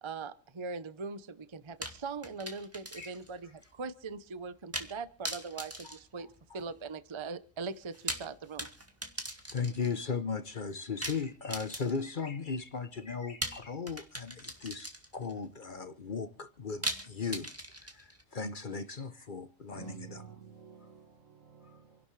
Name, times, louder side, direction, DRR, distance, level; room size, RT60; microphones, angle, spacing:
voice 1, 0.0-6.3 6.5-8.7, right 4 dB, 25° right, 0.7 m, -41 dB
sound 1, 1.8-3.3 3.6-3.7 4.7-5.0 5.2-6.8 7.8-10.0 11.0-12.2 13.4-15.3 16.8-18.2, right 1 dB, 10° right, 2.0 m, -40 dB
voice 2, 5.8-6.6 9.5-17.5 17.8-20.3, left 5 dB, 45° left, 0.9 m, -37 dB
voice 3, 19.7-22.0, right 6 dB, 70° right, 1.8 m, -50 dB
27.5 x 11.5 x 3.2 m
omnidirectional pair, 1.4 m